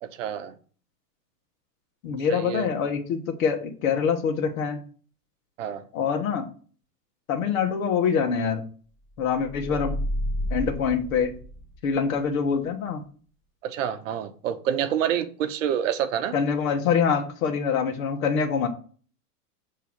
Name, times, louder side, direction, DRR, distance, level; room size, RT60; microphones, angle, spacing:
voice 1, 0.0-0.5 2.3-2.7 5.6-5.8 9.7-9.8 13.6-16.3, right 9 dB, 50° right, 11 dB, 0.8 m, -28 dB
voice 2, 2.0-4.8 5.9-6.5 7.3-8.6 9.2-10.0 10.5-11.3 11.8-13.0 16.3-18.7, left 6 dB, 55° left, 6 dB, 1.5 m, -25 dB
sound 1, 9.4-11.9, equal, 20° left, 2.3 m, -31 dB
7.0 x 3.7 x 6.1 m, 0.42 s
supercardioid pair, 155°, 48 cm